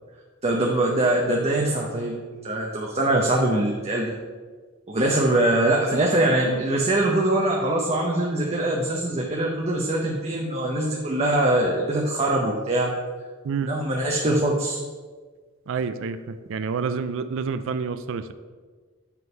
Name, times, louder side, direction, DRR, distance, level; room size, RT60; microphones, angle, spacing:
voice 1, 0.4-2.2 2.4-4.1 4.9-12.9 13.6-14.8, right 1 dB, 30° right, -1 dB, 0.7 m, -23 dB
voice 2, 15.7-18.3, right 5 dB, 65° right, 11 dB, 0.4 m, -28 dB
8.3 x 3.8 x 5.2 m, 1.5 s
head